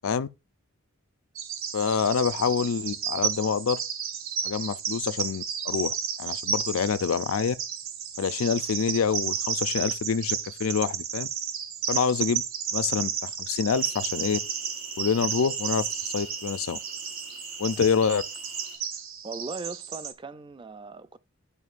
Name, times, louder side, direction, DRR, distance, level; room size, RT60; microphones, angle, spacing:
Bird vocalization bird call bird song, 1.4-20.1, right 8 dB, 65° right, 1.0 m, -32 dB
voice 1, 1.7-3.8 4.4-7.6 8.2-11.3 11.9-12.4 12.7-14.4 15.0-16.8 17.6-18.2, left 6 dB, 75° left, 0.4 m, -26 dB
sound 1, 13.7-18.8, right 2 dB, 90° right, 3.4 m, -43 dB
voice 2, 17.7-18.0 19.2-21.2, right 4 dB, 25° right, 0.3 m, -39 dB
11.5 x 5.0 x 2.5 m
head